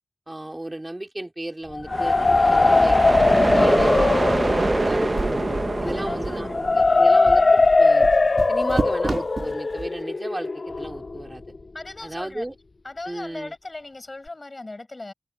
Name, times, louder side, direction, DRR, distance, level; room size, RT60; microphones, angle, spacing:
voice 1, 0.3-2.2 2.5-5.4 5.8-8.1 8.5-11.4 12.0-12.6 13.1-13.5, right 1 dB, 25° right, 4.2 m, -35 dB
sound 1, 1.7-11.6, left 3 dB, 65° left, 0.3 m, -20 dB
sound 2, 1.9-7.6, right 2 dB, 50° right, 1.0 m, -25 dB
sound 3, 4.8-9.9, right 3 dB, 65° right, 2.2 m, -32 dB
voice 2, 5.9-6.5 11.7-12.5 12.8-15.1, left 2 dB, 45° left, 5.2 m, -37 dB
wide cardioid pair, 70°, 0 cm